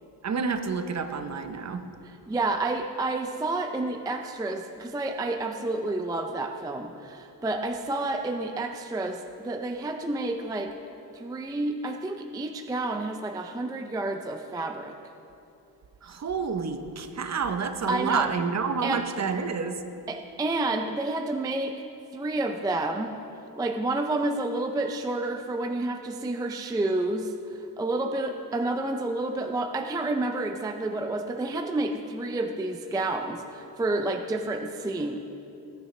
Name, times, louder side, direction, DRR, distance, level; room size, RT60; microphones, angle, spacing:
voice 1, 0.2-1.8 16.0-19.8, right 5 dB, 40° right, 7 dB, 0.8 m, -29 dB
voice 2, 2.0-10.8 11.1-15.0 17.9-18.3 18.8-19.1 20.1-21.8 22.1-23.1 23.6-35.2, right 2 dB, 10° right, 4 dB, 0.4 m, -30 dB
19.5 x 9.4 x 3.2 m, 2.8 s
wide cardioid pair, 150°, 40 cm